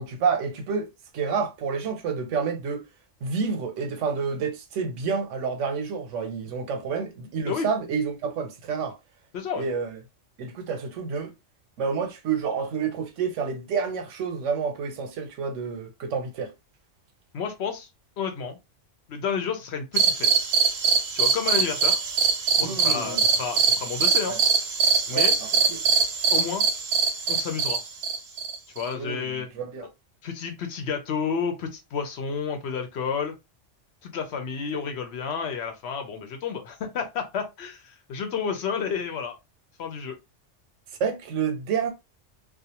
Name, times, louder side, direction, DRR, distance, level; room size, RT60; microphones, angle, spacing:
voice 1, 0.0-2.8 3.2-9.0 9.5-10.0 10.4-11.3 11.8-16.5 22.6-23.2 24.3-24.4 25.1-25.8 29.0-29.9 41.0-41.9, right 5 dB, 90° right, 1.0 m, -29 dB
voice 2, 9.3-9.6 17.3-17.9 18.2-18.6 19.1-20.3 21.1-22.0 22.6-24.3 25.1-25.3 26.3-26.7 27.3-27.8 28.8-29.5 30.2-33.3 34.0-39.3 39.8-40.2, left 6 dB, 65° left, 0.9 m, -30 dB
sound 1, 20.0-28.9, right 5 dB, 65° right, 0.8 m, -23 dB
2.4 x 2.3 x 2.8 m
omnidirectional pair, 1.2 m